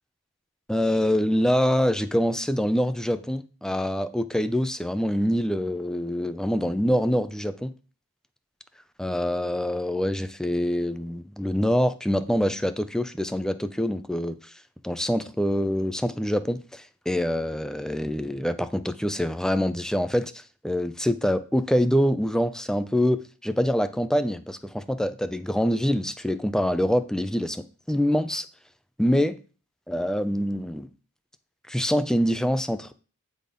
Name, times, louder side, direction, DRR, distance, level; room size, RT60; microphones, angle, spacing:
voice 1, 0.7-7.7 9.0-14.5 14.8-20.3 20.6-28.5 29.0-29.3 29.9-30.9 31.7-32.9, equal, 5° left, 12 dB, 0.5 m, -25 dB
8.9 x 4.2 x 5.2 m, 0.37 s
head